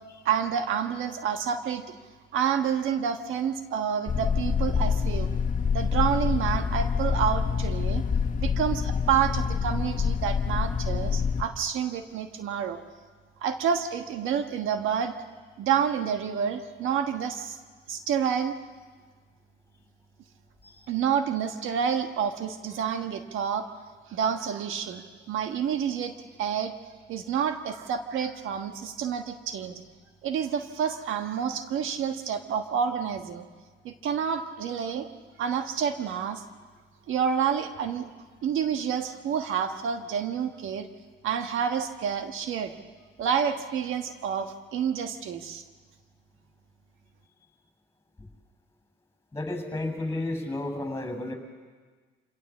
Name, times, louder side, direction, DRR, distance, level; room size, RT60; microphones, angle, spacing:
voice 1, 0.2-1.8 2.3-5.3 5.7-8.0 8.4-12.8 13.4-15.1 15.6-17.6 17.9-18.6 20.9-23.7 24.1-26.1 26.4-26.7 27.1-29.8 30.2-33.5 33.8-35.0 35.4-36.4 37.1-38.1 38.4-40.9 41.2-42.7 43.2-45.6, right 7 dB, 80° right, 7 dB, 1.4 m, -28 dB
sound 1, 4.1-11.4, left 6 dB, 40° left, 1.3 m, -26 dB
voice 2, 49.3-51.3, left 2 dB, 15° left, 6 dB, 6.5 m, -32 dB
27.0 x 18.0 x 7.4 m, 1.5 s
cardioid pair, 90°, 20 cm